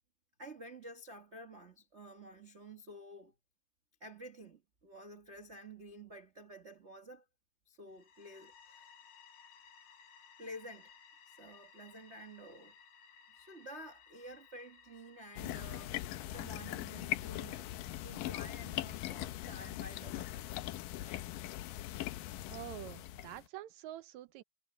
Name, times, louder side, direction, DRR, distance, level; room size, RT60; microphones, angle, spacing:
voice 1, 0.4-3.3 4.0-7.2 7.6-8.9 10.4-10.9 11.3-12.7 13.3-17.7 18.0-20.5 20.9-21.1, right 1 dB, 45° right, 0.8 m, -51 dB
sound 1, 7.9-20.6, left 6 dB, 55° left, 2.4 m, -61 dB
sound 2, 15.4-23.5, left 14 dB, 90° left, 2.4 m, -41 dB
voice 2, 22.5-24.4, right 14 dB, 80° right, 1.6 m, -47 dB
omnidirectional pair, 3.8 m